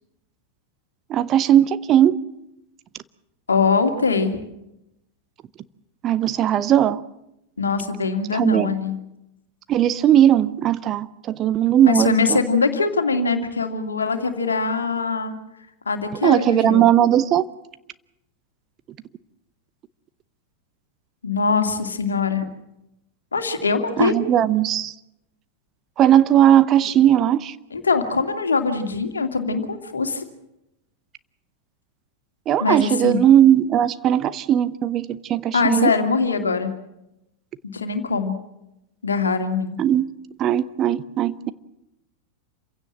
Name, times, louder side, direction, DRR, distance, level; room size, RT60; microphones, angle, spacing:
voice 1, 1.1-2.2 6.0-7.0 8.3-8.7 9.7-12.4 16.2-17.4 24.0-24.9 26.0-27.5 32.5-35.9 39.8-40.1 40.4-41.5, right 11 dB, 30° right, 15 dB, 0.8 m, -18 dB
voice 2, 3.5-4.4 7.6-9.0 11.9-15.3 15.9-16.8 21.2-22.5 23.3-24.2 27.7-30.2 32.6-33.2 35.5-36.7 37.7-38.4 39.0-39.8, left 4 dB, 75° left, 6 dB, 2.4 m, -22 dB
27.5 x 16.5 x 7.7 m, 0.89 s
figure-of-eight pair, 90°, 0 cm